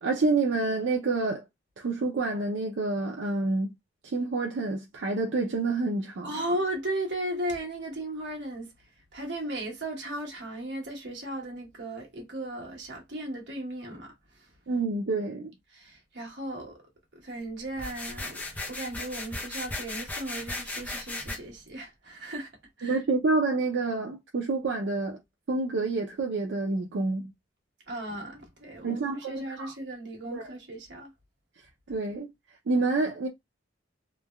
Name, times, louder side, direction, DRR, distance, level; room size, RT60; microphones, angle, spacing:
voice 1, 0.0-1.4 1.8-3.7 4.0-6.3 14.7-15.5 22.8-25.2 25.5-27.3 28.8-29.7 30.3-30.4 31.9-32.3 32.7-33.3, right 3 dB, 90° right, 0.5 m, -28 dB
voice 2, 6.2-8.7 9.1-14.1 14.4-14.5 15.7-16.8 17.1-22.5 22.8-23.0 27.9-31.1, right 1 dB, 70° right, 1.1 m, -36 dB
sound 1, 17.7-21.4, left 2 dB, 10° left, 0.5 m, -36 dB
3.2 x 2.2 x 2.2 m
head